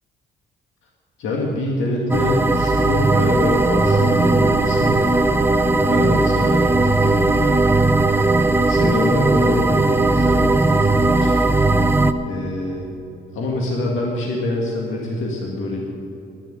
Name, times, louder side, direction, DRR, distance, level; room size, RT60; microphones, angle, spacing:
voice 1, 1.2-5.5 5.7-7.6 8.1-11.4 12.2-12.9 13.3-15.9, left 2 dB, 80° left, -2 dB, 2.0 m, -25 dB
sound 1, 2.1-12.1, right 2 dB, 10° right, 0.7 m, -17 dB
10.5 x 9.9 x 9.3 m, 2.9 s
cardioid pair, 90°, 20 cm